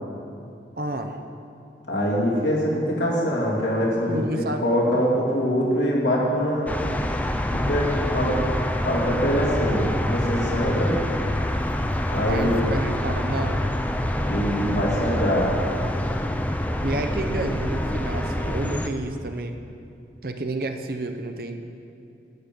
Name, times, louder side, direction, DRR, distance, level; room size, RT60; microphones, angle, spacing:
voice 1, 0.8-1.2 4.1-4.6 12.3-13.6 16.8-19.5 20.2-21.7, right 2 dB, 55° right, 6 dB, 0.7 m, -30 dB
voice 2, 1.9-6.7 7.5-8.4 8.8-11.0 12.1-12.6 14.2-15.5, equal, 90° left, -5 dB, 2.7 m, -24 dB
sound 1, 6.7-18.9, left 1 dB, 10° left, 0.4 m, -26 dB
12.0 x 8.6 x 5.3 m, 2.6 s
head